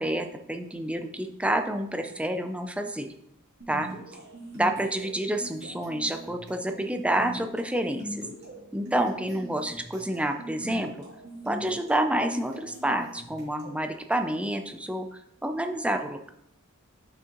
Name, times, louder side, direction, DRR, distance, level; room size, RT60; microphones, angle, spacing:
voice 1, 0.0-3.1 3.7-3.9 4.5-8.3 8.7-10.9 11.4-16.3, right 1 dB, 5° right, 6 dB, 0.5 m, -28 dB
sound 1, 3.6-13.8, right 1 dB, 55° right, 2.5 m, -42 dB
6.3 x 6.0 x 3.0 m, 0.76 s
head